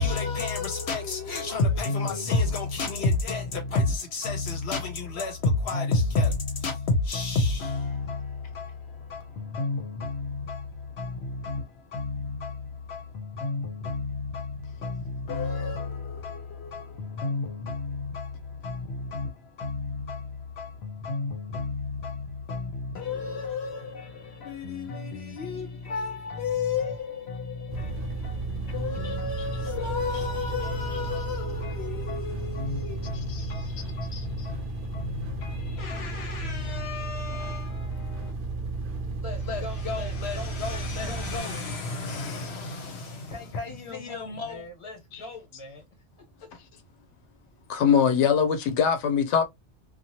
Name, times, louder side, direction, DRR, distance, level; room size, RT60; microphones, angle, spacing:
voice 1, 0.0-38.3 39.5-44.6, left 3 dB, 70° left, 0.9 m, -31 dB
sound 1, 27.7-41.4, right 3 dB, 60° right, 0.6 m, -33 dB
voice 2, 39.2-41.4 43.3-45.8, left 2 dB, 30° left, 1.1 m, -42 dB
voice 3, 42.1-42.5 45.1-45.2 47.7-49.4, left 7 dB, 90° left, 0.9 m, -24 dB
2.7 x 2.3 x 2.8 m
omnidirectional pair, 1.2 m